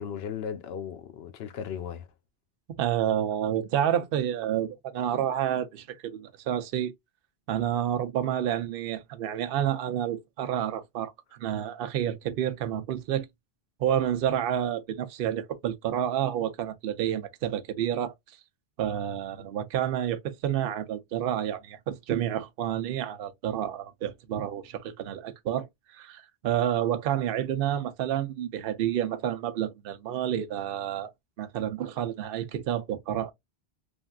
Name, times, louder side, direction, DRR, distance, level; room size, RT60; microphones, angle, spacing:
voice 1, 0.0-2.1, left 8 dB, 70° left, 0.8 m, -36 dB
voice 2, 2.8-6.9 7.5-13.3 13.8-18.1 18.8-31.1 31.4-33.3, right 10 dB, 65° right, 0.7 m, -29 dB
3.5 x 2.3 x 2.2 m
omnidirectional pair, 1.1 m